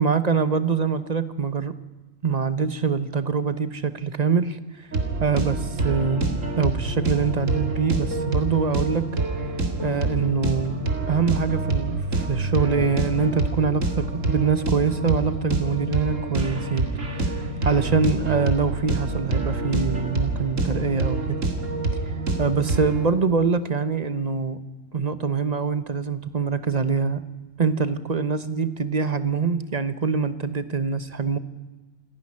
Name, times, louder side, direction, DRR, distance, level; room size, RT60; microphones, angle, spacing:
voice 1, 0.0-1.7 2.2-4.9 5.2-9.1 9.8-10.8 11.1-16.9 17.2-17.3 17.6-21.4 22.4-24.6 24.9-27.2 27.6-31.4, right 5 dB, 35° right, 12 dB, 1.1 m, -24 dB
sound 1, 4.9-23.1, right 2 dB, 80° right, 2.6 m, -27 dB
28.0 x 11.0 x 9.9 m, 1.2 s
omnidirectional pair, 1.3 m